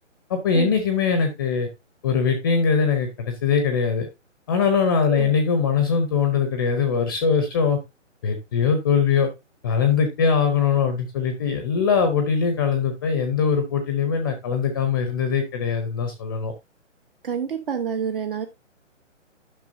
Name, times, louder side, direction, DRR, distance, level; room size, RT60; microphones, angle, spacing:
voice 1, 0.3-1.7 2.0-4.1 4.5-7.8 8.2-9.3 9.6-16.5, left 6 dB, 20° left, 7 dB, 0.7 m, -21 dB
voice 2, 5.1-5.4 17.2-18.5, right 7 dB, 45° right, 7 dB, 1.0 m, -28 dB
10.5 x 6.0 x 2.6 m, 0.23 s
hypercardioid pair, 150°, 38 cm